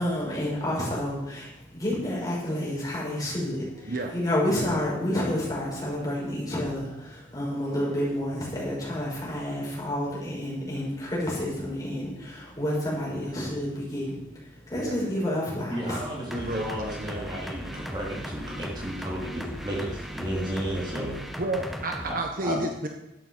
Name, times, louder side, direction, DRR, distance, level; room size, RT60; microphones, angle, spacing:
voice 1, 0.0-1.5 1.7-3.9 4.1-14.1 14.7-16.0, left 1 dB, 20° left, -6 dB, 6.1 m, -29 dB
voice 2, 15.7-21.1 22.1-22.6, equal, 20° right, -4 dB, 3.4 m, -33 dB
voice 3, 16.2-17.3 21.4-22.9, right 2 dB, 45° right, 3 dB, 1.2 m, -31 dB
sound 1, 16.3-22.1, equal, ahead, 1.3 m, -38 dB
12.5 x 9.0 x 7.3 m, 0.93 s
head